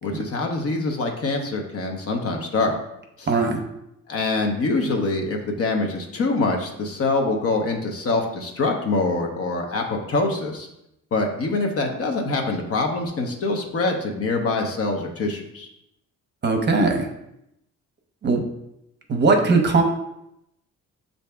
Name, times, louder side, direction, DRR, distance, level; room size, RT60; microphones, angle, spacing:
voice 1, 0.0-2.8 3.2-3.3 4.1-10.7 11.1-15.7, left 3 dB, 50° left, 2 dB, 0.9 m, -24 dB
voice 2, 3.3-3.6 16.4-17.1 18.2-18.4 19.1-19.8, right 3 dB, 35° right, 3 dB, 0.7 m, -19 dB
5.6 x 2.7 x 3.4 m, 0.83 s
cardioid pair, 90°, 30 cm